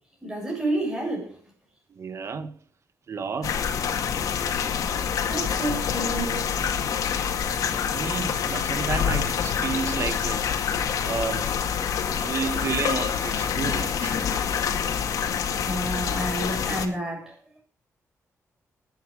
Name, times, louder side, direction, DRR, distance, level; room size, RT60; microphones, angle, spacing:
voice 1, 0.2-1.4 5.3-6.4 14.9-15.0 15.3-17.4, right 1 dB, 10° right, 7.0 m, -30 dB
voice 2, 1.9-2.5 3.1-3.6 6.2-6.4 7.9-10.7 11.0-11.5 12.1-14.2, right 5 dB, 55° right, 1.5 m, -31 dB
sound 1, 3.4-16.9, left 7 dB, 85° left, 2.2 m, -26 dB
19.5 x 9.1 x 4.9 m
cardioid pair, 105°, 6 cm